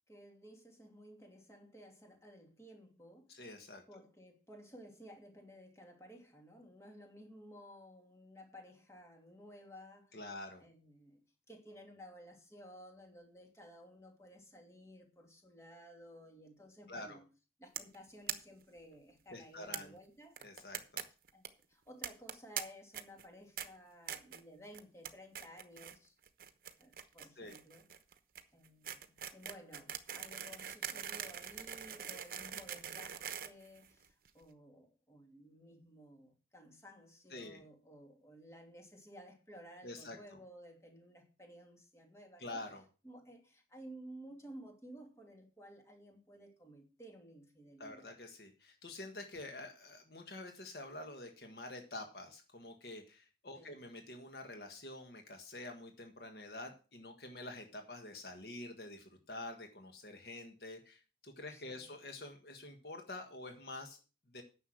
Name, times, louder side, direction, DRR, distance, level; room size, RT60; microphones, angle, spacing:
voice 1, 0.1-3.4 3.9-10.3 10.6-11.2 11.5-17.2 17.6-20.4 21.3-26.2 26.8-27.8 28.5-42.6 43.0-48.2 53.5-53.8 61.5-61.9, equal, 15° left, 2.6 m, -55 dB
voice 2, 3.3-3.8 10.1-10.6 16.9-17.2 19.3-19.9 20.4-21.0 27.4-27.6 37.3-37.6 39.8-40.2 42.4-42.8 47.8-64.0 64.3-64.4, left 2 dB, 60° left, 1.5 m, -47 dB
sound 1, 17.8-18.0 18.3-18.4 18.6-18.7 18.9-19.0 19.7-19.8 20.4-21.0 21.3-21.5 22.0-22.6 22.9-23.2 23.6-23.7 24.1-24.4 24.7-25.1 25.3-26.0 26.2-34.3, right 9 dB, 55° right, 1.0 m, -42 dB
10.0 x 6.8 x 6.3 m
head